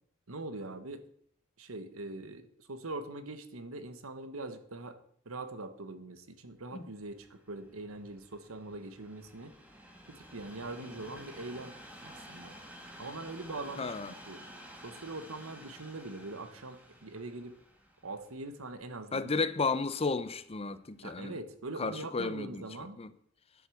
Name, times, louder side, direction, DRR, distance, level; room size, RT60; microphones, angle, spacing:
voice 1, 0.3-1.0 1.6-5.0 5.2-9.5 10.1-11.8 12.0-12.5 13.0-14.4 14.8-17.6 18.0-19.3 21.0-23.0, right 2 dB, 85° right, 1.3 m, -42 dB
Train, 6.9-20.1 20.8-20.9, equal, 10° right, 2.0 m, -52 dB
voice 2, 13.8-14.1 19.1-21.4 21.8-22.7 23.0-23.1, left 4 dB, 30° left, 0.6 m, -33 dB
11.0 x 8.0 x 7.0 m
head